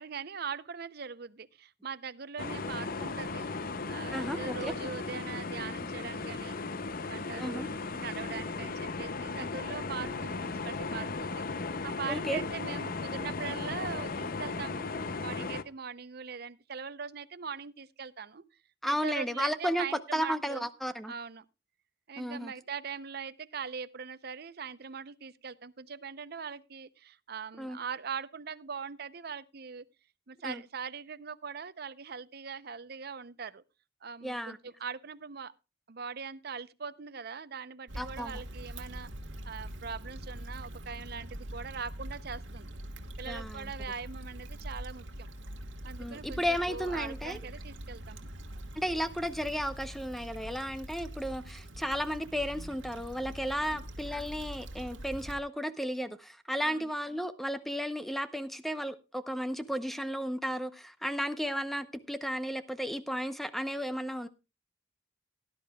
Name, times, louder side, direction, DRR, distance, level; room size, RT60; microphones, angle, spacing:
voice 1, 0.0-3.5 3.9-6.7 7.0-11.4 11.8-14.9 15.2-18.4 18.8-20.7 21.1-21.4 22.1-29.8 30.3-33.6 34.0-35.5 35.9-39.1 39.4-42.8 43.2-45.3 45.8-48.3 53.6-53.8 56.6-56.9, right 6 dB, 55° right, 0.6 m, -41 dB
sound 1, 2.4-15.6, left 3 dB, 50° left, 0.6 m, -36 dB
voice 2, 4.1-4.7 7.4-7.7 12.1-12.4 18.8-19.9 20.1-21.1 22.2-22.5 27.6-27.8 30.4-30.6 34.2-34.6 38.0-38.3 43.3-43.7 46.0-47.4 48.8-64.3, equal, ahead, 0.7 m, -34 dB
Stream / Traffic noise roadway noise / Trickle dribble, 37.9-55.4, right 1 dB, 75° right, 1.5 m, -43 dB
17.5 x 11.0 x 2.3 m
head